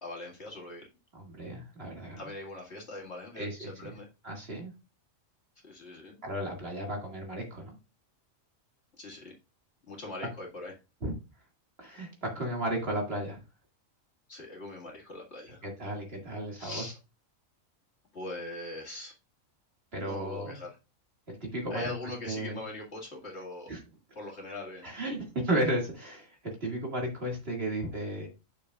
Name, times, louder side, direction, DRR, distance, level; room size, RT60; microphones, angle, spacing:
voice 1, 0.0-0.9 2.2-4.1 5.6-6.2 9.0-9.3 9.9-10.7 14.3-15.6 16.6-17.0 18.1-19.1 20.0-20.8 21.7-23.7 24.2-24.8, left 2 dB, 55° left, -1 dB, 2.3 m, -41 dB
voice 2, 1.1-2.2 3.4-3.9 4.2-4.7 6.2-7.7 11.0-11.2 11.8-13.4 15.6-16.8 19.9-20.6 21.3-21.8 22.3-22.6 23.7-23.8 24.8-28.3, right 1 dB, 50° right, 0 dB, 2.3 m, -34 dB
8.4 x 6.6 x 2.4 m, 0.28 s
omnidirectional pair, 1.4 m